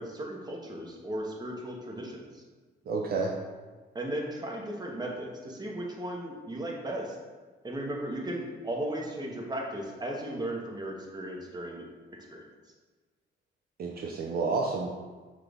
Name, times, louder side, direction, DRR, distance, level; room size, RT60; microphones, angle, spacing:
voice 1, 0.0-2.4 3.9-7.2 7.6-11.9 12.1-12.5, right 1 dB, 20° right, -1 dB, 0.9 m, -36 dB
voice 2, 2.9-3.3 13.8-14.9, right 4 dB, 50° right, -1 dB, 0.5 m, -30 dB
5.9 x 2.4 x 3.3 m, 1.4 s
cardioid pair, 90°, 20 cm